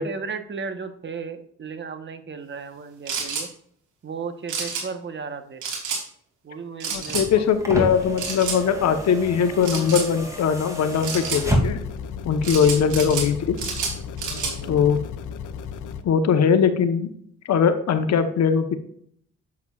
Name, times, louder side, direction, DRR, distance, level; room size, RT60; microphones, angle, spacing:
voice 1, 0.0-3.5 4.0-5.6 6.4-7.4 12.4-12.7 14.3-14.9, right 5 dB, 40° right, 8 dB, 1.1 m, -35 dB
sound 1, 3.1-3.5 4.5-4.8 5.6-6.0 6.8-7.3 8.2-8.6 9.6-10.1 11.0-11.4 12.4-13.3 13.6-14.5, right 5 dB, 75° right, 3.0 m, -29 dB
voice 2, 6.9-11.8 12.2-13.6 14.6-15.0 16.0-17.1 17.5-18.8, left 7 dB, 60° left, 9 dB, 1.1 m, -20 dB
sound 2, 6.9-12.1 13.3-13.4, equal, 10° right, 2.5 m, -29 dB
sound 3, 11.6-16.0, left 7 dB, 85° left, 0.8 m, -35 dB
8.2 x 8.0 x 2.4 m, 0.64 s
cardioid pair, 90°, 30 cm